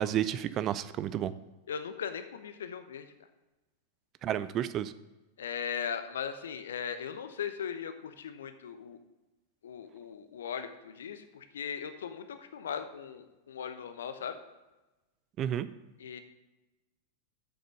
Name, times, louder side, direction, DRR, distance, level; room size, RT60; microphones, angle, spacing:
voice 1, 0.0-1.3 4.2-4.9 15.4-15.7, right 10 dB, 30° right, 14 dB, 0.4 m, -31 dB
voice 2, 1.7-3.1 5.4-9.0 9.6-14.4 16.0-16.2, left 7 dB, 65° left, 10 dB, 0.8 m, -38 dB
7.9 x 6.4 x 6.5 m, 1.1 s
figure-of-eight pair, 90°, 0 cm